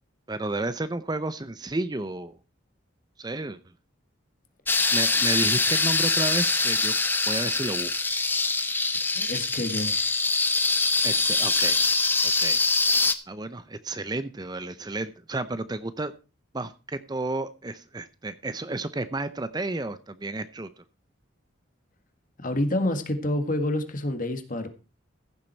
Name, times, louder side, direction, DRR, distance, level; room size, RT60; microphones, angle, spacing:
voice 1, 0.3-2.4 3.2-3.6 4.9-6.9 7.3-7.9 11.0-11.8 12.4-12.6 13.3-16.1 16.5-20.8, right 2 dB, 20° right, 13 dB, 0.6 m, -32 dB
sound 1, 4.7-13.1, left 3 dB, 10° left, 0.8 m, -24 dB
voice 2, 9.1-9.9 22.4-24.7, left 1 dB, 45° left, 8 dB, 1.8 m, -28 dB
15.0 x 7.5 x 4.4 m, 0.32 s
head